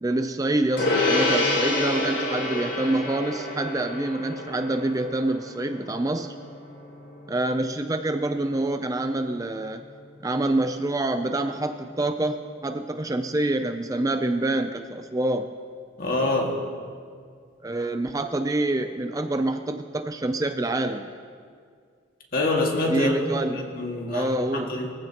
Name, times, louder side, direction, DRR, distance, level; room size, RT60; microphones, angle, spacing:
voice 1, 0.0-6.4 7.3-9.8 10.2-15.5 17.6-21.1 22.9-23.6 24.1-24.8, right 2 dB, 20° right, 7 dB, 0.4 m, -26 dB
Gong, 0.8-10.5, left 2 dB, 70° left, 3.4 m, -29 dB
voice 2, 16.0-16.6 22.3-23.1 23.5-24.9, left 2 dB, 50° left, 0 dB, 1.9 m, -26 dB
21.5 x 15.0 x 2.9 m, 2.1 s
head